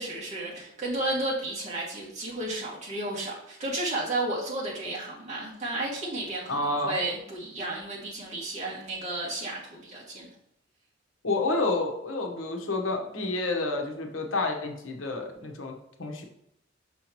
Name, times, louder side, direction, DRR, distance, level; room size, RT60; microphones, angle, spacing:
voice 1, 0.0-10.3, right 2 dB, 35° right, -5 dB, 2.2 m, -33 dB
voice 2, 6.5-6.9 11.2-15.7 16.0-16.2, left 2 dB, 80° left, 3 dB, 1.1 m, -29 dB
6.2 x 5.6 x 3.0 m, 0.76 s
head